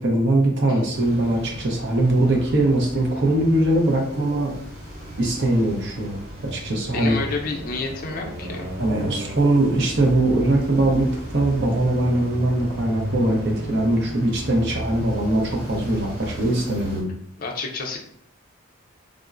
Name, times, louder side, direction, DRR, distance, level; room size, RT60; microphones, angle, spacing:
voice 1, 0.0-4.5 5.2-7.2 8.8-17.1, right 1 dB, 55° right, 0 dB, 0.6 m, -21 dB
sound 1, 0.9-17.0, equal, 80° right, 1.5 m, -35 dB
voice 2, 6.9-8.7 17.4-18.0, left 3 dB, 45° left, 1 dB, 0.5 m, -29 dB
3.6 x 2.0 x 2.4 m, 0.67 s
head